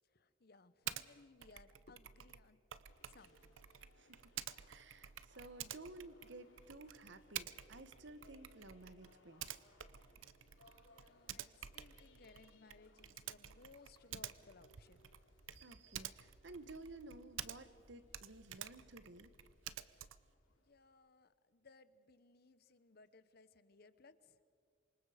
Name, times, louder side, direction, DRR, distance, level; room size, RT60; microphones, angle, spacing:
voice 1, 0.1-2.6 3.1-3.6 10.8-15.1 20.5-24.4, left 3 dB, 50° left, 14 dB, 0.9 m, -63 dB
Typing, 0.9-1.1 1.4-17.8 18.1-20.3, right 11 dB, 75° right, 0.7 m, -50 dB
sound 1, 2.8-20.7, left 1 dB, 75° left, 3.0 m, -69 dB
voice 2, 4.0-4.3 4.7-9.6 15.5-19.3, right 2 dB, 60° right, 12 dB, 1.1 m, -54 dB
27.5 x 24.5 x 5.0 m, 2.3 s
head